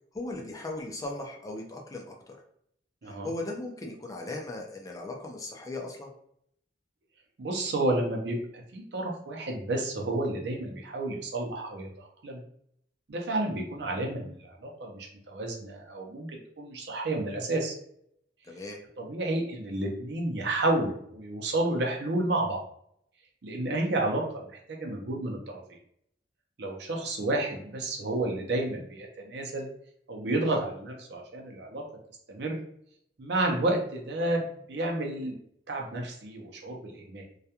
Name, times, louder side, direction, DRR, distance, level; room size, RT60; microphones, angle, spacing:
voice 1, 0.1-2.4 3.0-6.1 18.4-18.8 30.5-30.6, left 2 dB, 20° left, 1 dB, 0.4 m, -37 dB
voice 2, 7.4-8.4 8.7-12.4 13.1-17.7 19.0-22.6 23.4-24.2 24.7-25.6 26.6-29.7 30.1-31.8 32.3-32.6 33.2-35.4 35.7-37.2, right 2 dB, 65° right, 0 dB, 0.6 m, -31 dB
2.3 x 2.2 x 2.8 m, 0.69 s
head